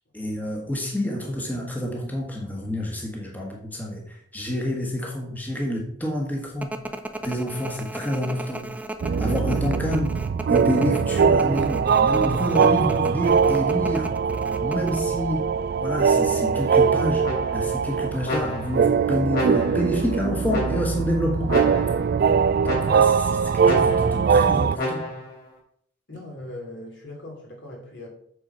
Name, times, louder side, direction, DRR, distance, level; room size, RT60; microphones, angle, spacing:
voice 1, 0.1-6.7 7.2-8.7 9.2-10.1 10.5-14.1 14.6-15.5 15.8-21.5 22.8-25.1, equal, 10° left, -1 dB, 1.3 m, -28 dB
sound 1, 6.6-15.0, right 1 dB, 10° right, 0.6 m, -35 dB
sound 2, 9.0-24.8, right 6 dB, 55° right, 0.3 m, -22 dB
sound 3, 17.2-17.8 18.2-18.9 19.3-20.0 20.5-21.1 21.5-22.1 22.6-23.2 23.6-24.3 24.7-25.4, left 1 dB, 50° left, 3.6 m, -30 dB
voice 2, 26.1-28.1, left 1 dB, 70° left, 0 dB, 2.9 m, -39 dB
7.9 x 4.6 x 5.6 m, 0.66 s
head